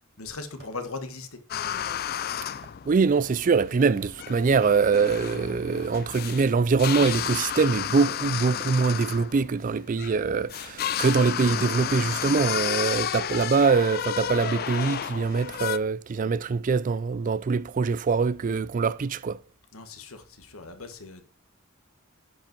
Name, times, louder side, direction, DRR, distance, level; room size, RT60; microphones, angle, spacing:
voice 1, 0.2-1.4 19.7-21.2, left 3 dB, 75° left, 1.4 m, -38 dB
sound 1, 1.5-15.8, left 10 dB, 45° left, 0.4 m, -32 dB
voice 2, 2.9-19.4, right 5 dB, 40° right, 0.3 m, -23 dB
10.0 x 5.5 x 5.3 m
head